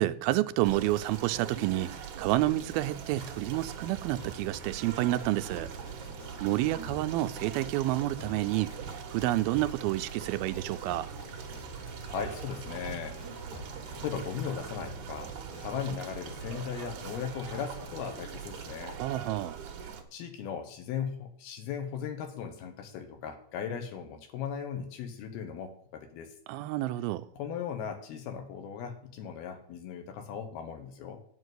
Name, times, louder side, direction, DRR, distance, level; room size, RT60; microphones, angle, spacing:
voice 1, 0.0-5.7 6.4-8.7 9.1-11.1 18.9-19.6 26.5-27.3, right 16 dB, 85° right, 2.3 m, -29 dB
sound 1, 0.6-20.0, right 7 dB, 65° right, 2.3 m, -42 dB
sound 2, 3.1-15.9, left 3 dB, 55° left, 2.9 m, -50 dB
Musical instrument, 5.5-19.5, right 2 dB, 30° left, 3.2 m, -51 dB
voice 2, 12.1-13.2 13.9-15.3 15.6-18.9 20.1-26.3 27.4-31.2, left 7 dB, 80° left, 3.1 m, -37 dB
9.9 x 5.2 x 8.0 m
omnidirectional pair, 4.3 m